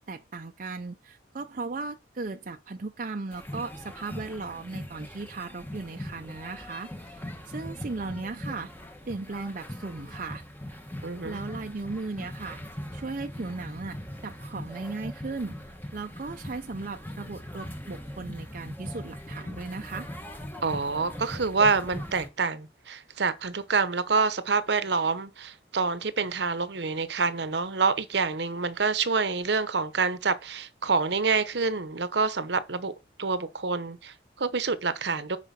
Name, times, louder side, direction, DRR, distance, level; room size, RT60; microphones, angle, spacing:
voice 1, 0.1-7.2 7.5-8.7 9.1-10.4 11.2-12.6 12.9-14.0 14.2-15.6 15.9-20.1, right 3 dB, 45° right, 0.5 m, -37 dB
sound 1, 3.3-22.3, equal, 10° left, 1.0 m, -40 dB
voice 2, 11.0-11.4 20.6-32.9 33.2-35.4, right 4 dB, 65° right, 0.9 m, -27 dB
9.2 x 5.0 x 4.2 m
head